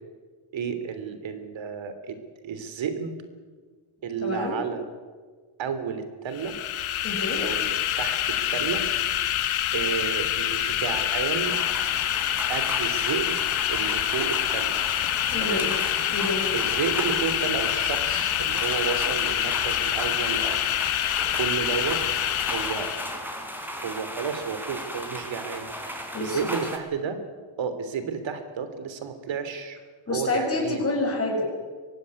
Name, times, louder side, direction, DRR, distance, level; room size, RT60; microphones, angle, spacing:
voice 1, 0.5-2.2 2.4-3.2 4.0-4.8 5.6-6.6 7.4-8.8 9.7-11.5 12.5-13.4 13.7-14.8 15.4-15.7 16.5-20.7 21.3-22.9 23.7-27.2 27.6-29.8 30.1-30.9, right 6 dB, 65° right, 10 dB, 3.4 m, -32 dB
voice 2, 4.2-4.5 7.0-7.4 15.3-15.7 16.1-16.4 26.1-26.4 30.1-31.5, left 2 dB, 30° left, -1 dB, 7.0 m, -27 dB
sound 1, 6.3-23.2, left 11 dB, 75° left, 1.7 m, -26 dB
sound 2, 11.4-26.8, equal, 5° right, 4.6 m, -36 dB
23.0 x 16.5 x 9.7 m, 1.5 s
cardioid pair, 95°, 49 cm